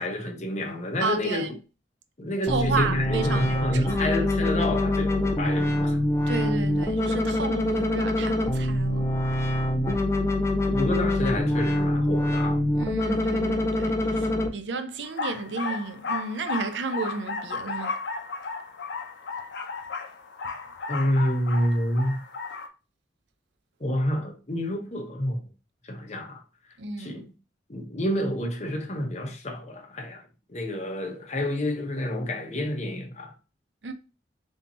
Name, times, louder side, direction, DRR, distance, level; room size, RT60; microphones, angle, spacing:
voice 1, 0.0-1.4 2.2-6.0 10.7-12.6 20.9-22.2 23.8-25.4 25.9-26.4 27.0-27.3 27.7-30.2 30.5-33.3, left 1 dB, 40° left, 0.9 m, -29 dB
voice 2, 1.0-1.5 2.5-4.1 6.3-9.1 12.8-18.0 26.8-27.2 33.8-33.9, right 4 dB, 90° right, 0.6 m, -32 dB
sound 1, 2.5-14.5, left 1 dB, 15° left, 0.5 m, -25 dB
sound 2, 15.0-22.7, left 4 dB, 85° left, 0.7 m, -34 dB
3.5 x 2.8 x 4.2 m
head